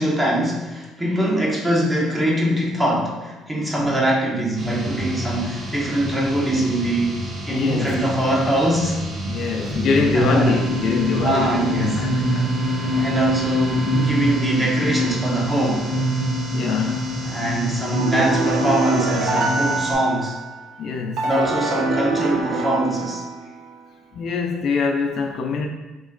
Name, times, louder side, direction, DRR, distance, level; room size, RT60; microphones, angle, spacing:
voice 1, 0.0-9.0 10.1-10.6 11.2-12.0 13.0-15.9 17.2-20.3 21.2-23.3, right 1 dB, 15° right, -3 dB, 1.1 m, -23 dB
sound 1, 4.6-19.9, equal, 50° right, 1.0 m, -25 dB
voice 2, 7.5-8.1 9.3-13.1 16.5-17.3 20.8-21.3 24.1-25.7, left 4 dB, 60° left, 3 dB, 0.5 m, -24 dB
sound 2, 17.9-20.5 21.2-23.6, right 3 dB, 75° right, 0.7 m, -25 dB
3.8 x 3.0 x 3.8 m, 1.1 s
cardioid pair, 110°, 0 cm